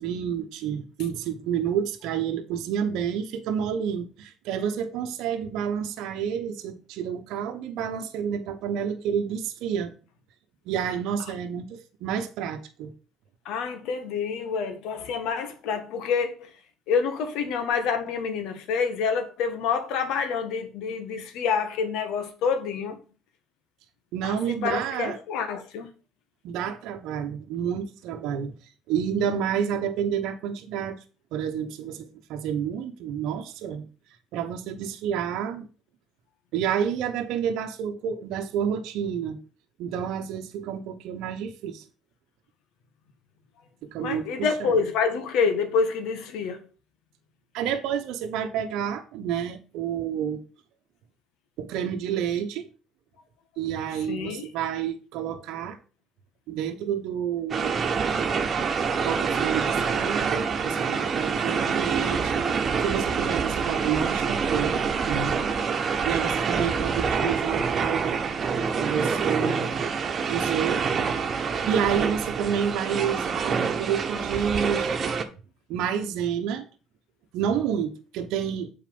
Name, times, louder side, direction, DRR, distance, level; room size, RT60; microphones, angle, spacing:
voice 1, 0.0-9.9 10.6-12.9 24.1-25.2 26.4-28.5 28.9-31.0 31.3-33.9 34.3-35.7 36.5-39.4 39.8-41.8 43.8-44.8 47.5-50.4 51.6-52.7 53.6-55.8 56.5-57.8 59.0-62.4 62.8-65.3 66.0-68.2 68.8-69.6 70.3-70.9 71.7-75.1 75.7-76.7 77.3-78.7, right 8 dB, 70° right, 1.0 m, -29 dB
voice 2, 13.4-16.5 16.9-23.0 24.2-25.9 44.0-46.6 54.1-54.5 69.4-69.7, left 6 dB, 70° left, 1.5 m, -27 dB
sound 1, 57.5-75.2, right 5 dB, 45° right, 1.2 m, -26 dB
7.5 x 4.8 x 5.3 m
hypercardioid pair, 60°, 0 cm